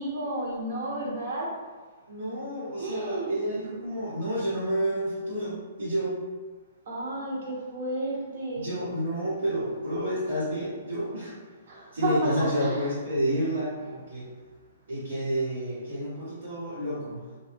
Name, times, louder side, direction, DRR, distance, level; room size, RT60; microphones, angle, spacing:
voice 1, 0.0-1.5 2.8-3.3 6.9-8.7 11.7-12.3 12.6-12.8, right 1 dB, 65° right, -4 dB, 1.0 m, -31 dB
voice 2, 2.1-6.2 8.5-11.3 11.9-14.3 14.9-17.2, equal, 90° right, -10 dB, 1.5 m, -30 dB
2.6 x 2.1 x 3.3 m, 1.4 s
hypercardioid pair, 135°, 0 cm